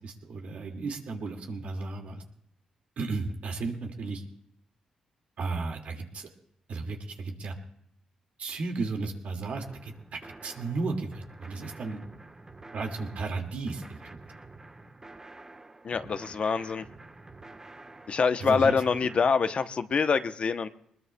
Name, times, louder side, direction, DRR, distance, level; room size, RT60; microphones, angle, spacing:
voice 1, 0.0-2.2 3.0-4.2 5.4-6.3 6.7-7.6 8.4-12.0 12.7-14.2 18.4-18.8, right 3 dB, 70° right, 2 dB, 2.0 m, -34 dB
sound 1, 9.6-19.3, right 2 dB, 25° right, 1.1 m, -49 dB
voice 2, 15.8-16.9 18.1-20.7, left 5 dB, 50° left, 10 dB, 0.7 m, -25 dB
21.5 x 20.5 x 2.2 m, 0.72 s
cardioid pair, 70°, 2 cm